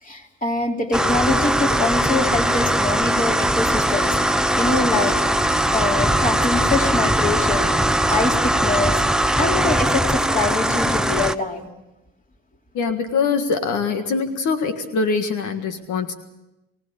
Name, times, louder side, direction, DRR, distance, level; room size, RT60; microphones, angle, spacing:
voice 1, 0.0-4.2 4.6-5.3 5.7-7.7 8.1-9.0 9.4-11.7, left 3 dB, 25° left, 2 dB, 3.4 m, -24 dB
sound 1, 0.9-11.3, right 1 dB, ahead, 0.7 m, -20 dB
voice 2, 12.7-16.1, left 5 dB, 80° left, 6 dB, 1.8 m, -23 dB
23.5 x 17.5 x 7.1 m, 0.97 s
cardioid pair, 90°, 30 cm